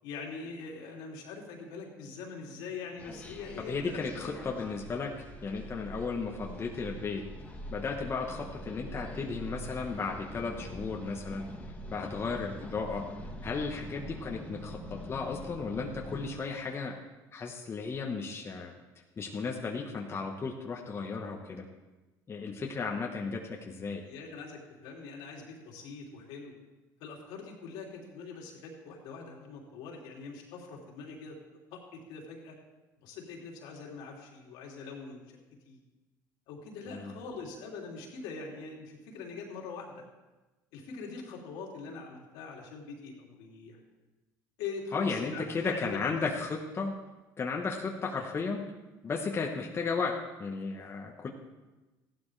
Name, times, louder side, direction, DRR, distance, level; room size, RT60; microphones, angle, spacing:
voice 1, 0.0-4.4 24.0-26.5 27.0-31.4 31.7-32.5 33.0-35.4 35.6-35.8 36.5-40.0 40.7-43.8 44.6-46.3, left 4 dB, 75° left, -1 dB, 3.0 m, -43 dB
sound 1, 3.0-16.3, equal, 15° left, 1.7 m, -44 dB
voice 2, 3.7-5.1 5.4-7.2 7.7-11.5 11.9-13.0 13.4-16.9 17.3-18.7 19.2-21.6 22.3-24.0 36.9-37.1 44.9-47.0 47.4-48.6 49.0-51.3, left 4 dB, 30° left, 0 dB, 1.4 m, -34 dB
15.5 x 11.5 x 3.4 m, 1.1 s
supercardioid pair, 90°, 8 cm